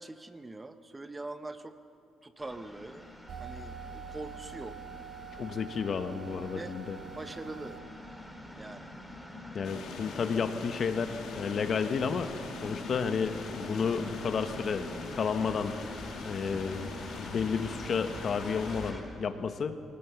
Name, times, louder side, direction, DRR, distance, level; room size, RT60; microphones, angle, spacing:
voice 1, 0.0-1.8 2.2-3.0 3.4-4.8 6.6-6.7 7.1-7.8 8.6-8.9, right 2 dB, 15° right, 10 dB, 1.0 m, -43 dB
sound 1, 2.4-19.0, left 1 dB, ahead, 3.1 m, -44 dB
sound 2, 3.3-7.8, right 7 dB, 60° right, 3.0 m, -46 dB
voice 2, 5.4-7.0 9.5-12.3 12.6-15.8 16.2-16.9 17.2-19.8, left 6 dB, 50° left, 9 dB, 1.2 m, -32 dB
sound 3, 9.6-18.9, left 6 dB, 75° left, 2.3 m, -44 dB
23.0 x 18.5 x 7.1 m, 2.5 s
cardioid pair, 105°, 0 cm